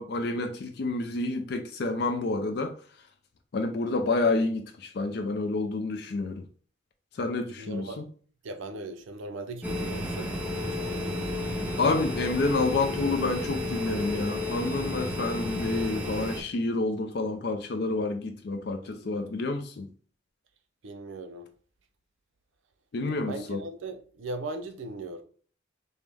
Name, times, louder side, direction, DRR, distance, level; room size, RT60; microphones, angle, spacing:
voice 1, 0.0-2.7 3.5-6.4 7.1-8.0 11.8-19.9 22.9-23.6, left 3 dB, 55° left, 0.4 m, -29 dB
voice 2, 7.6-8.1 8.4-10.4 10.6-10.9 18.8-19.1 20.8-21.5 23.1-25.2, right 2 dB, 75° right, 0.5 m, -38 dB
sound 1, 9.6-16.4, left 1 dB, 5° right, 0.6 m, -32 dB
5.1 x 2.1 x 3.4 m
head